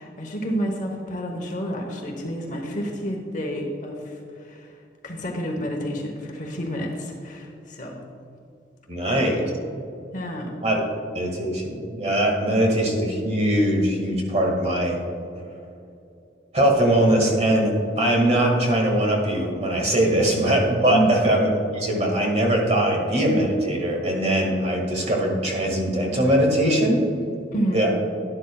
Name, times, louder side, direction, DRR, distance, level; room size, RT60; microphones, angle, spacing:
voice 1, 0.0-4.8 5.0-8.0 9.2-9.4 10.1-10.5 20.1-20.2 20.9-21.2 27.5-27.9, equal, 45° left, 1 dB, 1.0 m, -29 dB
voice 2, 8.9-9.4 10.6-10.8 11.1-15.0 16.5-21.5 21.7-27.0 27.7-28.0, right 1 dB, 35° right, 0 dB, 1.8 m, -21 dB
11.5 x 11.0 x 2.3 m, 2.6 s
head